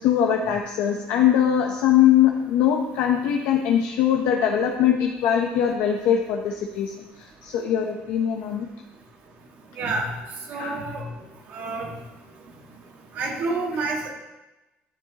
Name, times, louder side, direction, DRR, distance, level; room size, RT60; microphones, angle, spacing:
voice 1, 0.0-6.9 7.4-8.7 10.5-10.8, left 9 dB, 75° left, 2 dB, 0.8 m, -21 dB
voice 2, 9.8-10.1 10.5-11.0 11.5-11.9 13.2-14.1, right 3 dB, 55° right, 0 dB, 1.8 m, -28 dB
12.0 x 6.4 x 3.0 m, 1.0 s
cardioid pair, 155°, 4 cm